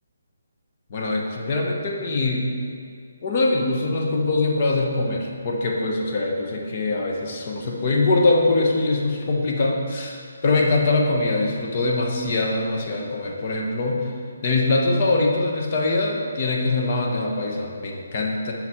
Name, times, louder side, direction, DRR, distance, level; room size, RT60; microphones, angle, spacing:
voice 1, 0.9-2.5 3.2-14.1 14.4-18.5, left 2 dB, 40° left, -1 dB, 1.2 m, -23 dB
7.7 x 5.9 x 4.4 m, 2.3 s
figure-of-eight pair, 150°, 0 cm